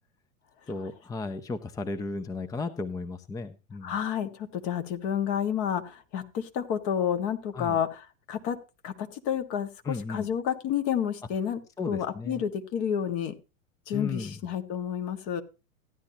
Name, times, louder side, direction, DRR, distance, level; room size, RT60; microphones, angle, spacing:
voice 1, 0.7-3.9 7.5-7.8 9.8-10.3 11.8-12.4 13.9-14.4, left 4 dB, 10° left, 10 dB, 0.6 m, -34 dB
voice 2, 3.8-8.6 8.8-11.6 11.9-13.3 13.9-15.4, left 8 dB, 45° left, 7 dB, 1.6 m, -30 dB
14.5 x 10.5 x 2.8 m, 0.29 s
figure-of-eight pair, 90°, 41 cm